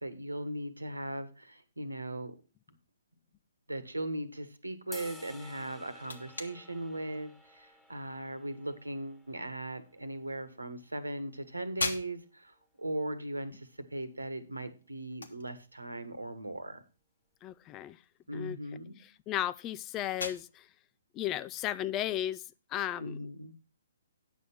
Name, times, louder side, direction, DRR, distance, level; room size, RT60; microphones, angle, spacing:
voice 1, 0.0-2.3 3.7-16.8 18.3-19.0 23.0-23.5, right 1 dB, 90° right, 1.3 m, -38 dB
sound 1, 4.9-11.1, left 1 dB, 5° left, 1.4 m, -53 dB
sound 2, 5.4-23.1, left 3 dB, 75° left, 1.4 m, -46 dB
voice 2, 17.4-18.0 18.3-18.6 19.3-20.7 21.1-22.4 22.7-23.3, left 12 dB, 25° left, 0.4 m, -34 dB
9.2 x 6.3 x 5.8 m
figure-of-eight pair, 130°, 0 cm